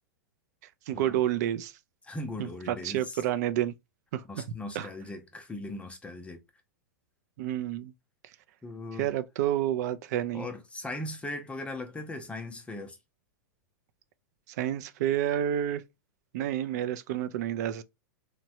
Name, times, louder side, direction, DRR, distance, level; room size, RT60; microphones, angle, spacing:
voice 1, 0.9-1.7 2.4-3.7 4.1-4.4 4.7-4.9 7.4-7.9 9.0-10.5 14.6-15.8 16.3-17.8, right 11 dB, 60° right, 0.4 m, -29 dB
voice 2, 2.0-3.2 4.3-6.4 8.6-9.1 10.3-13.0, left 2 dB, 10° left, 0.5 m, -39 dB
3.1 x 2.1 x 2.7 m
hypercardioid pair, 115°, 10 cm